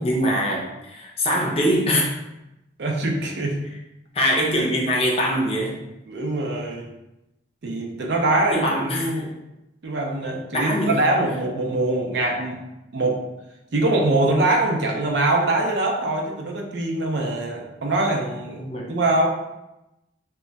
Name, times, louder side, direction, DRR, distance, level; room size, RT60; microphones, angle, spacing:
voice 1, 0.0-2.1 4.1-5.8 8.5-9.2 10.5-11.1 18.6-18.9, equal, 30° left, -1 dB, 0.5 m, -23 dB
voice 2, 2.8-3.6 6.1-6.9 7.6-9.3 9.8-12.6 12.9-13.2 13.7-18.6 18.9-19.3, right 2 dB, 65° right, 0 dB, 0.5 m, -23 dB
2.2 x 2.1 x 3.8 m, 0.93 s
head